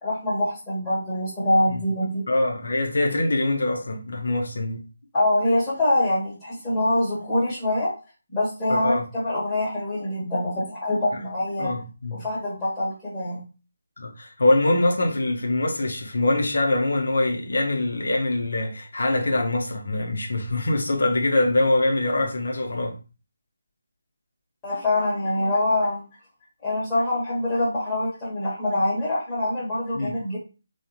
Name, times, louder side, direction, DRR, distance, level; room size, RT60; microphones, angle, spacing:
voice 1, 0.0-2.2 5.1-7.9 8.3-11.7 12.2-13.4 24.6-26.0 26.6-30.4, left 1 dB, 10° left, 1.3 m, -24 dB
voice 2, 2.3-4.8 8.7-9.0 11.6-12.2 14.0-22.9 29.9-30.1, left 2 dB, 60° left, 0.9 m, -23 dB
3.5 x 2.7 x 2.9 m
figure-of-eight pair, 150°, 0 cm